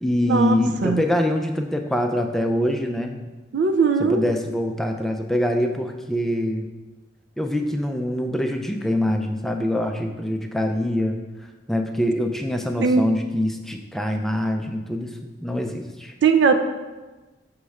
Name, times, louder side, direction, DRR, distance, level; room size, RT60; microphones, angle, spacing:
voice 1, 0.0-3.2 4.0-6.7 7.4-11.2 11.7-15.1 15.4-16.1, left 1 dB, ahead, 3 dB, 0.3 m, -24 dB
voice 2, 3.5-4.2 12.8-13.0 16.2-16.6, right 5 dB, 65° right, 6 dB, 0.4 m, -19 dB
6.5 x 3.1 x 4.7 m, 1.2 s
head